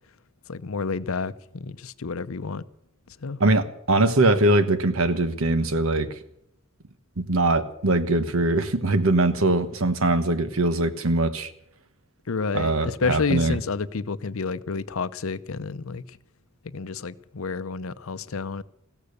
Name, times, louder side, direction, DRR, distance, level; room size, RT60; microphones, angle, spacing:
voice 1, 0.5-2.6 3.1-3.4 12.3-16.2 16.6-18.6, left 4 dB, 75° left, 0.7 m, -30 dB
voice 2, 3.4-6.1 7.2-11.5 12.5-13.6, right 2 dB, 75° right, 1.3 m, -22 dB
16.0 x 13.5 x 6.8 m
head